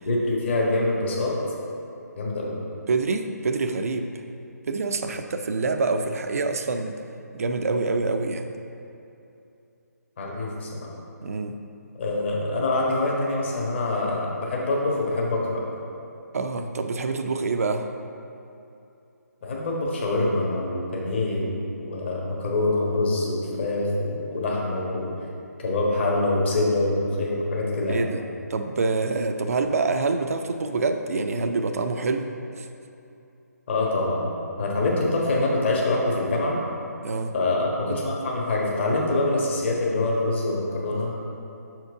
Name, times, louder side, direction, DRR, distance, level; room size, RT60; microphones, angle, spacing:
voice 1, 0.0-1.3 2.2-2.6 10.2-10.9 12.0-15.6 19.4-25.1 25.6-28.0 33.7-34.3 34.6-36.6 37.3-41.1, left 2 dB, 40° left, -3 dB, 1.3 m, -25 dB
voice 2, 2.9-4.1 4.7-6.9 7.3-8.5 11.2-11.6 16.3-17.9 27.9-28.2 28.5-32.3 32.6-32.7 37.0-37.3, right 3 dB, 55° right, 6 dB, 0.4 m, -26 dB
6.2 x 4.6 x 4.7 m, 2.7 s
figure-of-eight pair, 145°, 9 cm